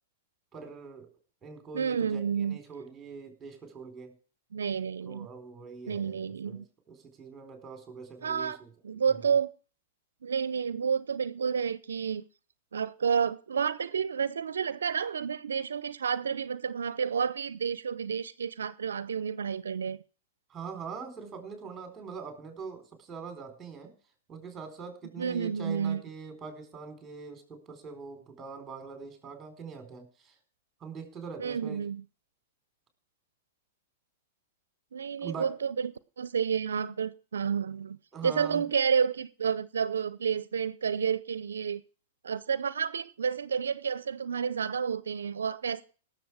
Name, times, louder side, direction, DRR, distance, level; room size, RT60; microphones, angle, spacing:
voice 1, 0.5-1.1 1.4-4.1 5.0-8.7 9.1-9.2 20.5-23.9 24.3-30.3 30.8-31.9 35.2-35.5 38.1-38.6, right 5 dB, 20° right, 4.2 m, -43 dB
voice 2, 1.7-2.6 4.5-5.3 5.9-6.6 8.2-8.6 8.8-9.5 10.2-12.2 12.7-20.0 25.2-26.0 31.4-32.0 34.9-35.9 36.2-38.0 38.2-41.8 42.2-45.8, right 6 dB, 85° right, 0.6 m, -30 dB
18.5 x 7.1 x 4.8 m
hypercardioid pair, 120°, 0 cm